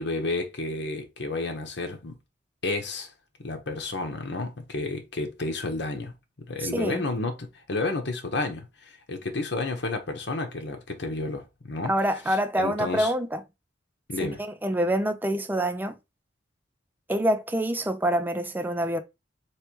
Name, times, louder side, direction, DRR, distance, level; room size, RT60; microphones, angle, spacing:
voice 1, 0.0-2.1 2.6-3.1 3.4-6.1 6.4-11.9 12.3-13.1 14.1-14.4, left 2 dB, 65° left, 1.0 m, -31 dB
voice 2, 6.6-7.0 11.8-13.4 14.2-14.3 14.6-16.0 17.1-19.0, right 1 dB, 10° right, 0.5 m, -26 dB
3.3 x 3.2 x 4.4 m
head